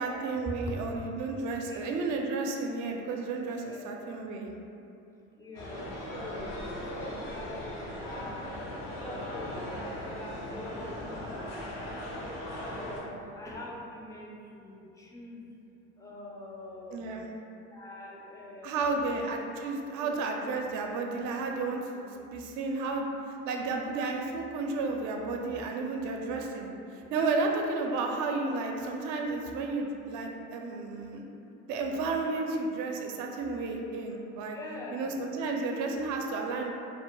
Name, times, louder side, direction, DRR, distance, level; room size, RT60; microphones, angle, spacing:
voice 1, 0.0-4.5 16.9-17.3 18.6-23.1 23.4-31.3 31.7-34.6 34.9-36.7, right 3 dB, 55° right, 2 dB, 0.4 m, -32 dB
voice 2, 3.7-4.0 5.4-8.5 8.8-15.6 16.0-17.2 17.7-19.4 20.0-20.2 20.4-20.6 26.9-27.1 34.5-35.2, left 1 dB, 10° left, -3 dB, 0.4 m, -45 dB
sound 1, 5.5-13.0, left 1 dB, 85° left, 0.6 m, -38 dB
2.1 x 2.1 x 3.0 m, 2.7 s
hypercardioid pair, 65°, 37 cm